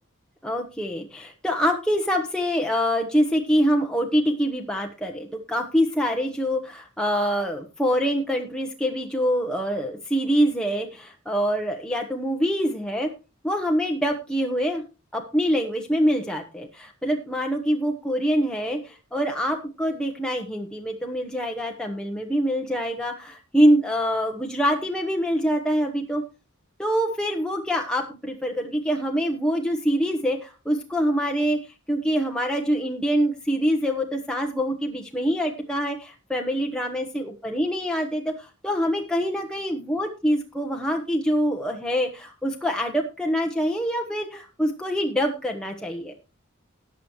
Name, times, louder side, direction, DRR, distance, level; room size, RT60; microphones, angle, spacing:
voice 1, 0.4-13.1 13.4-14.8 15.1-26.2 26.8-31.6 31.9-46.1, equal, 5° left, 2 dB, 1.1 m, -25 dB
18.0 x 6.9 x 3.1 m, 0.31 s
head